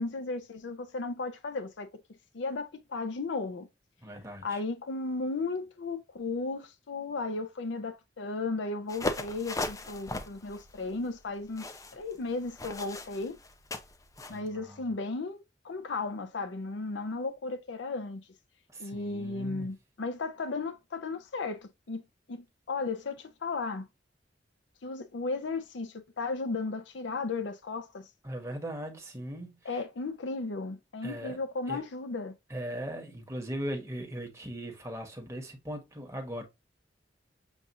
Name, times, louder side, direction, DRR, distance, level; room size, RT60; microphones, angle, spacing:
voice 1, 0.0-1.9 2.3-3.7 4.4-13.4 14.3-18.2 18.8-22.0 22.3-23.8 24.8-28.1 29.6-32.3, left 3 dB, 85° left, 0.6 m, -35 dB
voice 2, 4.0-4.6 14.3-14.9 18.7-19.7 28.2-29.8 31.0-31.4 31.7-31.8 32.5-36.4, right 1 dB, 15° right, 1.2 m, -39 dB
sound 1, 8.9-14.4, left 2 dB, 20° left, 0.5 m, -38 dB
7.1 x 2.5 x 2.5 m
head